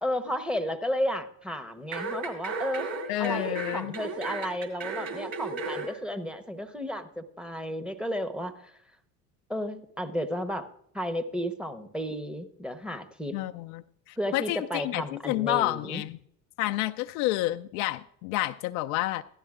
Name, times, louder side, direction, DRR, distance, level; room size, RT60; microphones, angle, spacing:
voice 1, 0.0-2.9 3.2-8.7 9.5-10.7 10.9-13.3 14.2-16.0, equal, ahead, 9 dB, 0.9 m, -33 dB
sound 1, 1.9-5.9 6.3-6.4, right 3 dB, 45° right, 2.4 m, -35 dB
voice 2, 3.1-3.9 13.3-16.2 16.6-19.2, left 16 dB, 60° left, 9 dB, 0.5 m, -29 dB
15.0 x 12.0 x 2.5 m, 0.71 s
hypercardioid pair, 70°, 48 cm